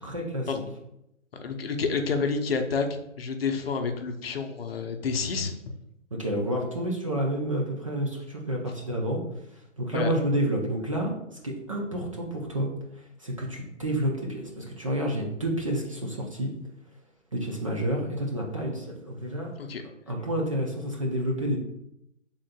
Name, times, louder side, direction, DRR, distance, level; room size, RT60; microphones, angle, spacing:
voice 1, 0.0-0.5 6.2-9.2 9.8-11.1 11.4-12.7 13.2-16.5 17.3-19.5 20.1-21.6, right 1 dB, 25° right, -1 dB, 0.5 m, -29 dB
voice 2, 1.4-2.9 3.2-5.5 9.9-10.1 19.6-19.8, left 5 dB, 50° left, 5 dB, 0.7 m, -29 dB
6.1 x 3.8 x 2.2 m, 0.82 s
figure-of-eight pair, 145°, 39 cm